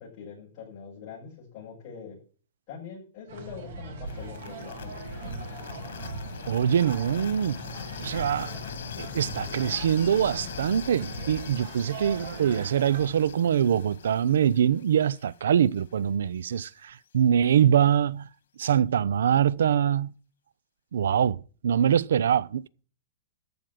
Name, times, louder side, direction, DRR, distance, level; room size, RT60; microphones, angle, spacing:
voice 1, 0.0-2.2 2.7-5.3, left 6 dB, 30° left, 6.8 m, -43 dB
sound 1, 3.3-13.1, right 3 dB, 55° right, 3.0 m, -40 dB
sound 2, 4.0-16.0, left 7 dB, 85° left, 1.7 m, -41 dB
voice 2, 6.5-7.6 8.0-8.5 9.0-18.3 18.6-20.1 20.9-21.4 21.6-22.7, right 9 dB, 90° right, 0.5 m, -24 dB
14.0 x 5.1 x 9.1 m
supercardioid pair, 170°, 0 cm